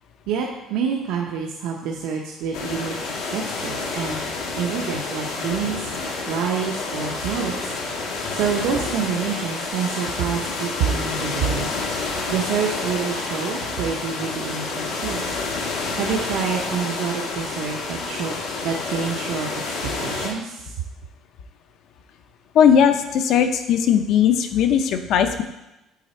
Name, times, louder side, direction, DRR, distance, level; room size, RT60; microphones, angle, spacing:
voice 1, 0.3-3.0 3.3-4.2 4.5-5.9 6.3-7.7 8.3-11.7 12.3-15.2 15.9-18.3 18.6-19.7 20.0-20.7, right 7 dB, 70° right, 0 dB, 0.7 m, -27 dB
sound 1, 2.5-20.3, left 3 dB, 85° left, 1.4 m, -29 dB
voice 2, 22.5-25.4, left 8 dB, 50° left, 8 dB, 0.6 m, -18 dB
8.4 x 4.0 x 4.3 m, 0.93 s
cardioid pair, 175°, 0 cm